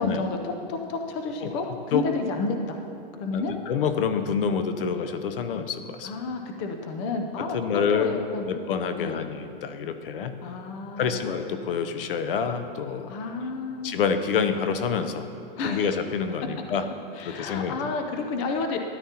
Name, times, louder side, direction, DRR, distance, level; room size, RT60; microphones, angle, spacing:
voice 1, 0.0-2.8 3.2-3.5 6.0-8.6 9.0-9.2 10.4-11.3 13.1-14.0 15.6-15.9 17.2-18.8, left 3 dB, 25° left, 4 dB, 0.6 m, -30 dB
voice 2, 3.3-6.1 7.4-8.1 8.4-10.3 11.0-13.1 13.8-15.3 15.6-16.9 17.3-17.8, left 6 dB, 70° left, 9 dB, 0.8 m, -27 dB
13.0 x 11.0 x 2.9 m, 2.6 s
supercardioid pair, 160°, 29 cm